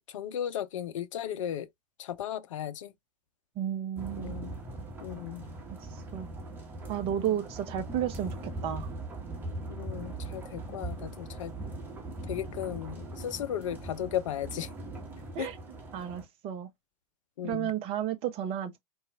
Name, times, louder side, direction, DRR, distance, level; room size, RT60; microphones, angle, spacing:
voice 1, 0.1-1.7 2.0-2.9 4.2-4.6 5.0-5.4 7.1-7.4 9.8-11.5 12.3-14.7 15.4-15.5 17.4-17.7, left 10 dB, 55° left, 0.5 m, -35 dB
voice 2, 3.6-4.4 5.7-5.8 6.1-6.3 6.9-8.4 8.6-8.9 15.3-15.5 15.9-16.7 17.4-18.8, right 10 dB, 30° right, 0.7 m, -32 dB
sound 1, 4.0-16.2, right 2 dB, 10° right, 1.2 m, -40 dB
4.0 x 2.3 x 2.3 m
figure-of-eight pair, 95°, 20 cm